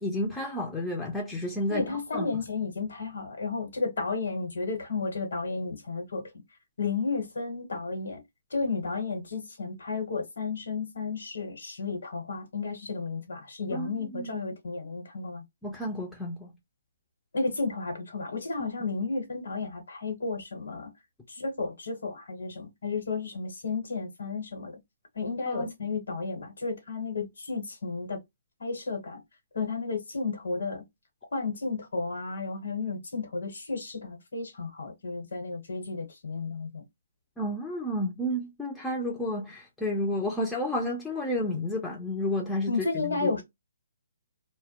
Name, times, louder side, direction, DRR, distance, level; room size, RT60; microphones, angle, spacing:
voice 1, 0.0-2.3 13.7-14.4 15.6-16.5 18.6-18.7 25.5-25.7 37.4-43.4, left 1 dB, 5° left, 0.3 m, -31 dB
voice 2, 1.7-6.3 6.8-8.2 8.5-15.4 17.3-20.9 21.3-24.8 25.1-28.2 28.6-29.2 29.5-30.8 31.3-36.8 42.7-43.4, left 4 dB, 80° left, 1.0 m, -32 dB
2.2 x 2.0 x 2.8 m
hypercardioid pair, 160°, 0 cm